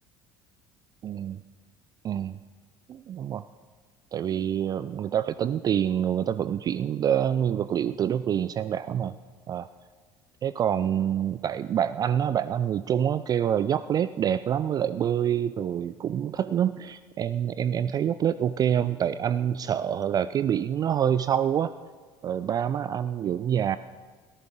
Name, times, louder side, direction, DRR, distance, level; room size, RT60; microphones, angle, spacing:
voice 1, 1.0-1.4 2.0-2.4 2.9-3.5 4.1-9.2 9.5-9.7 10.4-21.7 22.2-23.8, right 9 dB, 30° right, 15 dB, 0.4 m, -26 dB
22.0 x 14.0 x 3.8 m, 1.4 s
figure-of-eight pair, 60°, 13 cm